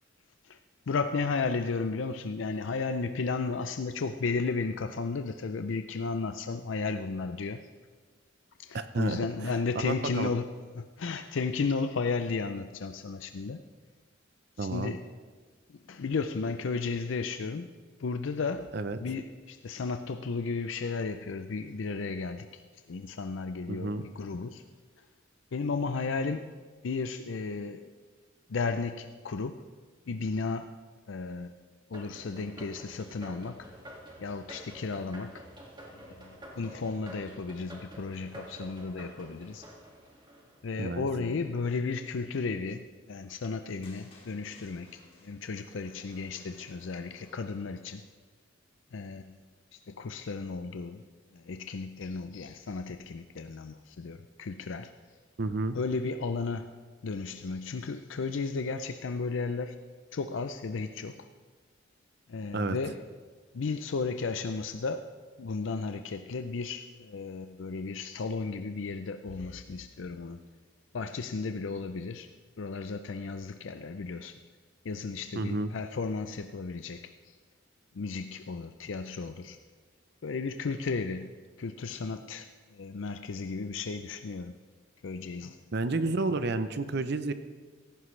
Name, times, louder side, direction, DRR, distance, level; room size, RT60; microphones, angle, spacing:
voice 1, 0.9-7.7 8.6-10.5 10.7-13.6 14.6-15.1 15.9-17.7 18.0-18.7 19.0-22.6 22.9-24.6 25.5-26.5 26.8-27.9 28.5-29.6 30.1-30.8 31.1-31.5 31.9-33.7 34.2-35.5 35.9-39.7 40.6-48.0 48.9-49.4 49.7-51.0 51.3-54.9 55.7-56.8 57.0-59.8 60.1-61.3 62.3-63.0 63.5-65.1 65.4-70.4 70.9-72.3 72.6-74.3 74.8-77.4 77.9-79.6 80.2-81.3 81.6-84.5 85.0-85.6, left 4 dB, 70° left, 9 dB, 0.5 m, -34 dB
voice 2, 8.7-10.3 14.6-14.9 18.7-19.0 23.7-24.1 40.8-41.1 55.4-55.8 62.5-62.8 75.3-75.7 85.7-87.3, right 3 dB, 55° right, 11 dB, 0.6 m, -31 dB
sound 1, 31.9-41.0, right 1 dB, 25° right, 2.0 m, -49 dB
sound 2, 43.8-48.1, left 2 dB, 30° left, 2.6 m, -58 dB
17.0 x 14.5 x 3.2 m, 1.5 s
head